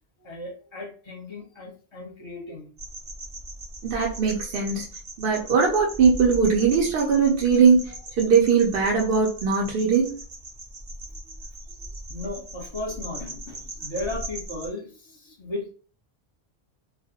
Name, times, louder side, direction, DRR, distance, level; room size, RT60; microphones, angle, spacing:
voice 1, 0.2-2.7 11.2-11.4 11.7-15.7, left 2 dB, 30° left, -1 dB, 0.8 m, -36 dB
sound 1, 2.8-14.7, right 1 dB, 40° right, 0.3 m, -39 dB
voice 2, 3.8-4.8 5.2-10.1, right 5 dB, 65° right, -1 dB, 0.8 m, -20 dB
2.3 x 2.1 x 2.7 m, 0.40 s
omnidirectional pair, 1.1 m